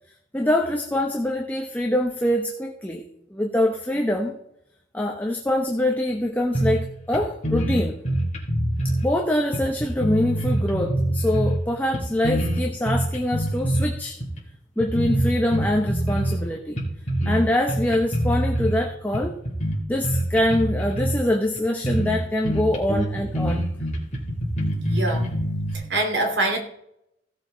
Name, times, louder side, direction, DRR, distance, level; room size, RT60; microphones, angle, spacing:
voice 1, 0.3-3.0 3.3-4.3 4.9-8.0 9.0-14.2 14.8-16.8 17.3-19.4 19.9-23.7, left 1 dB, 10° left, 1 dB, 0.9 m, -24 dB
sound 1, 6.5-6.9 7.1-7.2 7.4-9.1 9.5-11.6 11.9-13.9 14.2-14.4 14.8-16.4 16.8-17.4 17.7-18.7 19.1-21.2 21.6-21.7 21.8-22.2 22.4-25.7, right 1 dB, 40° left, 3.3 m, -25 dB
voice 2, 24.7-25.3 25.7-26.6, right 2 dB, 70° right, 2 dB, 2.6 m, -25 dB
16.5 x 7.4 x 3.9 m, 0.77 s
head